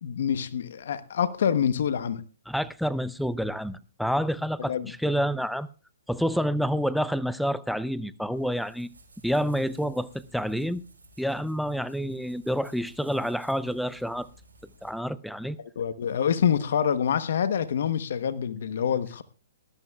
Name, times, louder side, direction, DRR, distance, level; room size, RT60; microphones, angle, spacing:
voice 1, 0.0-2.2 4.7-4.9 15.8-19.2, left 8 dB, 65° left, 13 dB, 1.0 m, -26 dB
voice 2, 2.5-5.7 6.1-8.9 9.2-10.8 11.2-14.3 14.8-15.6, equal, ahead, 17 dB, 0.6 m, -28 dB
sound 1, 8.3-14.9, right 2 dB, 85° right, 5.2 m, -55 dB
19.5 x 13.0 x 2.4 m, 0.34 s
hypercardioid pair, 135°, 0 cm